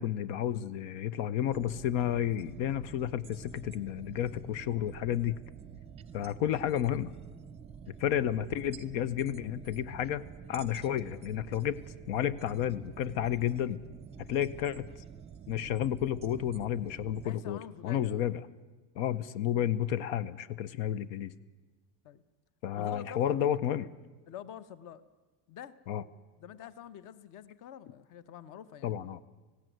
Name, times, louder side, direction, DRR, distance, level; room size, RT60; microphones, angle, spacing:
voice 1, 0.0-5.4 6.1-7.1 8.0-11.8 12.1-13.8 14.3-14.9 15.5-18.4 19.0-21.3 22.6-23.9 25.9-26.0 28.8-29.2, left 10 dB, 80° left, 17 dB, 0.9 m, -31 dB
sound 1, 1.5-17.3, right 7 dB, 15° right, 0.6 m, -48 dB
voice 2, 17.2-18.2 19.1-19.3 22.0-22.2 22.7-23.4 24.3-25.0 25.5-25.7 26.4-28.9, left 9 dB, 45° left, 16 dB, 1.0 m, -46 dB
19.0 x 16.5 x 9.2 m, 1.3 s
cardioid pair, 175°, 43 cm